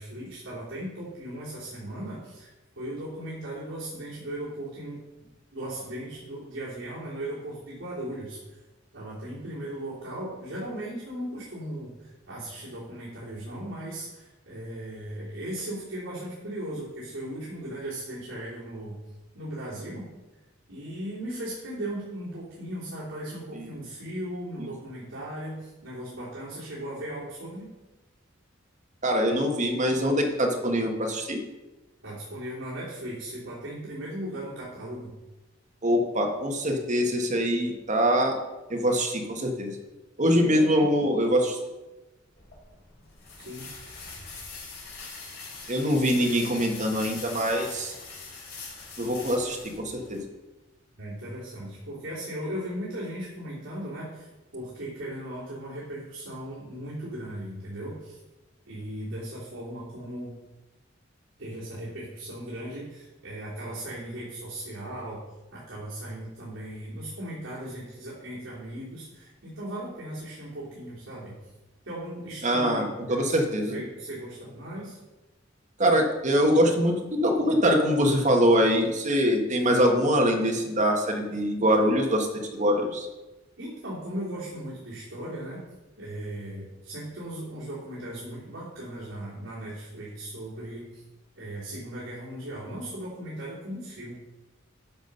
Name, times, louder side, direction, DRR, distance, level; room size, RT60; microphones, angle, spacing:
voice 1, 0.0-5.0 5.5-8.6 8.9-19.0 19.3-20.1 20.7-27.7 32.0-35.1 40.3-41.1 43.4-43.7 51.0-58.2 58.7-60.4 61.4-65.2 65.5-71.5 71.8-75.0 83.6-85.6 86.0-91.0 91.4-94.1, right 1 dB, 70° right, -10 dB, 3.4 m, -37 dB
voice 2, 29.0-31.4 35.8-38.4 38.7-39.7 40.2-41.6 45.7-47.9 49.0-50.2 72.4-72.8 73.1-73.8 75.8-82.3 82.5-83.1, equal, 40° right, 2 dB, 1.6 m, -23 dB
sound 1, 42.4-50.2, left 4 dB, 55° left, 3.6 m, -42 dB
10.5 x 6.2 x 5.6 m, 1.1 s
head